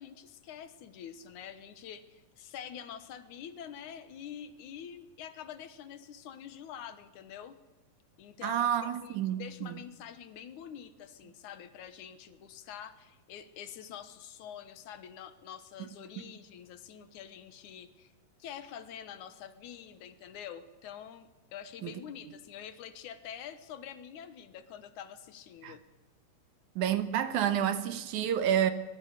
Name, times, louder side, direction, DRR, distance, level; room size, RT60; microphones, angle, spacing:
voice 1, 0.0-7.6 8.2-18.1 18.4-25.8, left 9 dB, 70° left, 2.6 m, -46 dB
voice 2, 8.4-9.8 21.8-21.9 25.6-25.8 26.8-28.7, right 10 dB, 70° right, 2.5 m, -29 dB
22.0 x 22.0 x 6.6 m
omnidirectional pair, 3.7 m